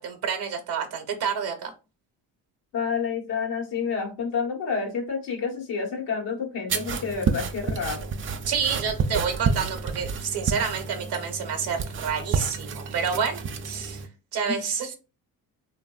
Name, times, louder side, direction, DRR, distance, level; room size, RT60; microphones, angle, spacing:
voice 1, 0.0-1.7 8.5-14.0 14.3-15.0, right 6 dB, 65° right, 5 dB, 0.7 m, -29 dB
voice 2, 2.7-8.1 14.4-14.6, left 5 dB, 80° left, -1 dB, 1.2 m, -29 dB
sound 1, 6.7-14.1, right 5 dB, 30° right, 0.4 m, -30 dB
3.0 x 2.5 x 2.2 m, 0.32 s
supercardioid pair, 70°, 41 cm